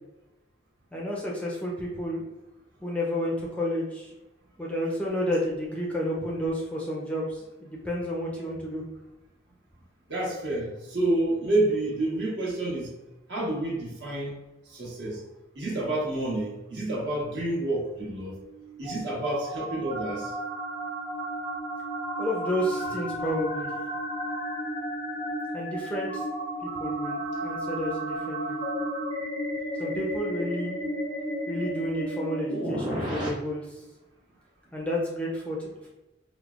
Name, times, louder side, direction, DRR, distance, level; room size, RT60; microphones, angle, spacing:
voice 1, 0.9-2.3 2.8-4.1 4.6-8.8 22.2-23.7 25.5-26.2 26.6-28.6 29.8-30.8 31.5-33.7 34.7-35.6, equal, 5° left, -3 dB, 0.5 m, -31 dB
voice 2, 10.1-12.9 13.3-14.4 14.7-15.2 15.5-18.3 18.8-20.3, right 1 dB, 60° right, -5 dB, 1.3 m, -29 dB
sound 1, 18.2-33.3, equal, 25° right, 1.1 m, -33 dB
4.9 x 2.1 x 2.4 m, 1.0 s
head